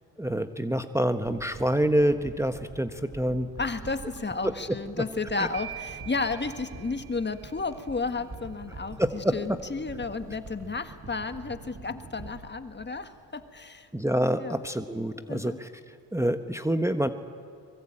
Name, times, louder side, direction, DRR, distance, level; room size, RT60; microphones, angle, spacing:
voice 1, 0.2-3.5 5.4-5.5 9.0-9.3 13.9-15.7 16.1-17.1, right 1 dB, 5° right, 7 dB, 1.2 m, -26 dB
sound 1, 1.2-13.7 14.0-14.1, right 2 dB, 40° right, 7.8 m, -46 dB
voice 2, 3.6-13.9 14.4-14.6 15.3-15.6, left 4 dB, 25° left, 9 dB, 1.6 m, -32 dB
sound 2, 5.5-7.7, right 12 dB, 65° right, 2.3 m, -43 dB
24.0 x 22.0 x 8.9 m, 2.3 s
cardioid pair, 70°, 41 cm